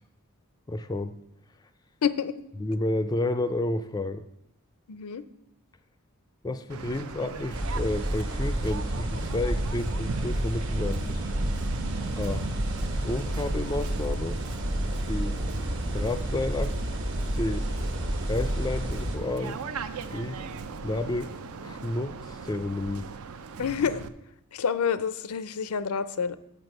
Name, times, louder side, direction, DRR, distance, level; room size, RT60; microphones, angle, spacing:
voice 1, 0.7-1.1 2.6-4.2 6.4-11.2 12.1-12.4 13.0-14.4 15.1-15.4 15.9-16.8 17.3-17.7 18.2-19.6 20.1-20.4 20.8-21.3 21.6-23.1, left 2 dB, 15° left, 11 dB, 0.3 m, -31 dB
voice 2, 2.0-2.3 4.9-5.2 23.6-24.0 24.5-26.4, left 7 dB, 85° left, 15 dB, 0.5 m, -28 dB
Waves surf, 6.7-24.1, right 4 dB, 75° right, 0.5 m, -38 dB
sound 1, 7.5-19.2, equal, 60° right, 1.5 m, -30 dB
7.0 x 6.2 x 6.6 m, 0.80 s
head